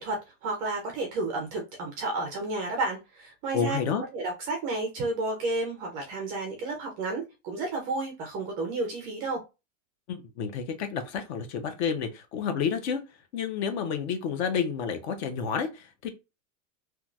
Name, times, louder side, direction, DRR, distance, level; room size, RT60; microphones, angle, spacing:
voice 1, 0.0-3.8 4.1-9.4, right 2 dB, 20° right, 0.3 m, -31 dB
voice 2, 3.5-4.0 10.1-13.0 13.3-16.1, left 6 dB, 55° left, 0.8 m, -30 dB
3.0 x 2.3 x 2.5 m
supercardioid pair, 160°, 39 cm